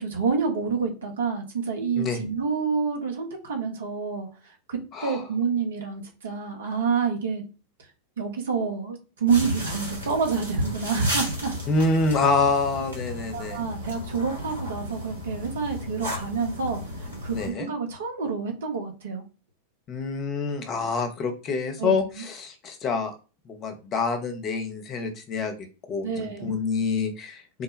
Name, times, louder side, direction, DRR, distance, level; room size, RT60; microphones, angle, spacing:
voice 1, 0.0-7.4 8.2-11.6 13.3-19.2 21.8-22.0 26.0-26.5, right 5 dB, 65° right, 2 dB, 1.0 m, -28 dB
sound 1, 9.3-17.5, left 1 dB, 80° right, 1.4 m, -35 dB
voice 2, 11.7-13.6 17.3-17.7 19.9-23.1 23.5-25.5 25.9-27.6, left 4 dB, 30° left, 6 dB, 0.8 m, -27 dB
3.7 x 2.2 x 3.2 m, 0.33 s
figure-of-eight pair, 90°, 0 cm